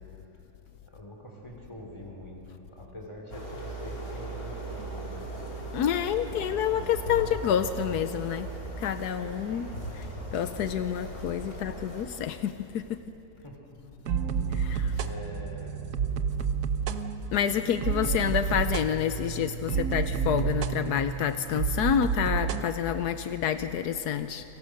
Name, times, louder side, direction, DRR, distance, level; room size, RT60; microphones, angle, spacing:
voice 1, 0.9-5.5 6.2-7.4 9.5-9.7 13.4-13.8 15.0-15.8, equal, 15° left, 0 dB, 4.4 m, -45 dB
sound 1, 3.3-12.0, right 2 dB, 65° left, 4.2 m, -38 dB
voice 2, 5.7-8.5 8.8-9.7 10.3-13.0 14.5-14.9 17.3-24.4, left 9 dB, 80° left, 10 dB, 1.3 m, -28 dB
sound 2, 14.1-22.6, right 6 dB, 75° right, 1.5 m, -30 dB
30.0 x 24.0 x 6.7 m, 3.0 s
omnidirectional pair, 1.7 m